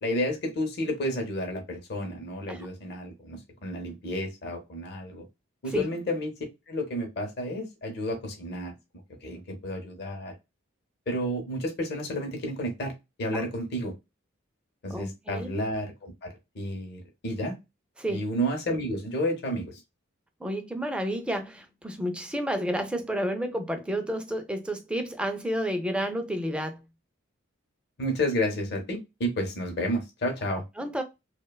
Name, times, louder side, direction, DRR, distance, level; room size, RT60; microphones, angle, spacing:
voice 1, 0.0-5.2 5.6-6.3 6.7-8.7 9.2-10.4 11.1-12.9 13.2-13.9 14.8-17.6 18.1-19.8 28.0-30.6, equal, 55° left, 0.7 m, -31 dB
voice 2, 14.9-15.5 18.0-18.3 20.4-26.8 30.8-31.0, equal, 5° right, 0.3 m, -30 dB
2.7 x 2.1 x 2.2 m
head